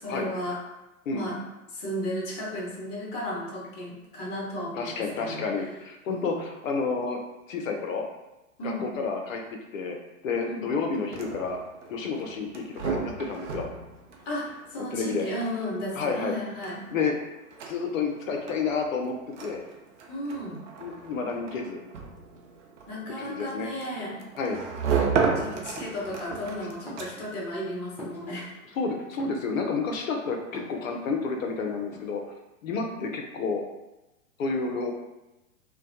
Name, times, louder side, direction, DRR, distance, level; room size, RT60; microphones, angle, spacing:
voice 1, 0.0-0.6 1.1-1.4 1.7-5.5 6.1-6.4 8.6-8.9 10.4-10.7 14.3-16.8 20.1-20.6 22.9-24.3 25.3-28.6, equal, 35° left, -4 dB, 0.8 m, -34 dB
voice 2, 4.7-7.2 7.5-8.0 8.6-9.4 9.7-10.0 10.2-11.6 11.9-13.7 14.8-15.3 15.9-16.4 16.9-17.1 17.7-19.1 19.4-19.6 20.8-21.8 23.2-23.7 24.4-24.6 28.7-32.2 32.6-33.6 34.4-34.9, left 4 dB, 65° left, 2 dB, 0.6 m, -30 dB
sound 1, 10.9-27.4, right 5 dB, 60° right, 0.5 m, -34 dB
sound 2, 25.7-26.5 26.8-28.8 29.1-29.9 30.5-31.5 31.8-32.3, equal, 5° left, 0.5 m, -45 dB
2.2 x 2.1 x 2.7 m, 0.98 s
figure-of-eight pair, 105°, 43 cm